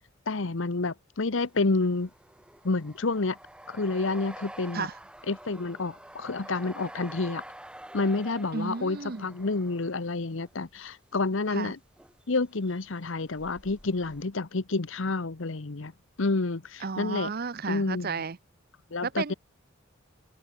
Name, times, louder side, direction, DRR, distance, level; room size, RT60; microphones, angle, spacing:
voice 1, 0.3-2.1 2.6-3.4 3.7-4.9 5.3-7.4 7.9-11.8 12.3-15.9 16.2-17.3 17.7-18.1 18.9-19.3, left 3 dB, 65° left, 1.0 m, -29 dB
sound 1, 1.4-10.9 11.9-12.4 12.6-14.3, right 1 dB, 5° right, 3.4 m, -48 dB
voice 2, 8.5-9.3 11.5-11.7 16.8-18.4 19.0-19.3, right 5 dB, 45° right, 0.7 m, -33 dB
head